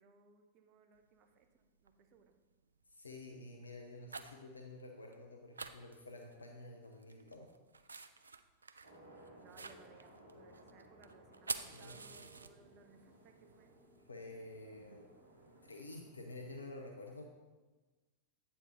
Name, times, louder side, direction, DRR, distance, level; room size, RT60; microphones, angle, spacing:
voice 1, 0.0-2.4 9.3-13.7, right 5 dB, 40° right, 6 dB, 0.8 m, -64 dB
sound 1, 0.9-1.0 1.8-2.2 2.6-2.9 3.7-4.5 4.8-4.9 5.1-5.2 5.5-6.6 6.9-13.0 13.3-15.8, right 4 dB, 75° right, 0.3 m, -48 dB
voice 2, 2.9-7.5 11.7-12.0 14.1-15.1 15.6-17.2, left 2 dB, 80° left, 2 dB, 0.6 m, -50 dB
sound 2, 8.8-16.6, right 1 dB, 55° right, 2.2 m, -61 dB
8.1 x 4.4 x 4.4 m, 1.3 s
figure-of-eight pair, 90°, 0 cm